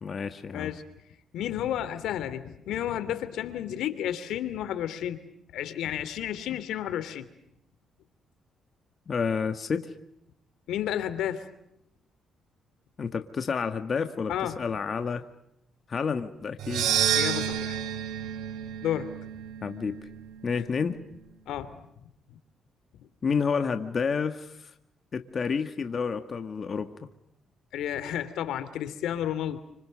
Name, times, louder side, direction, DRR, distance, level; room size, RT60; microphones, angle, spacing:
voice 1, 0.0-0.7 9.1-9.9 13.0-15.2 15.9-16.9 19.6-20.0 20.4-21.0 23.2-24.7 25.1-26.9, left 5 dB, 45° left, 8 dB, 2.0 m, -30 dB
voice 2, 0.5-0.8 1.3-5.2 5.5-7.2 10.7-11.5 14.3-14.6 17.1-17.8 18.8-19.1 21.5-21.8 27.7-29.6, left 11 dB, 80° left, 13 dB, 2.9 m, -31 dB
sound 1, 16.6-20.9, right 9 dB, 80° right, 3.2 m, -30 dB
30.0 x 26.5 x 6.6 m, 0.78 s
cardioid pair, 90°, 0 cm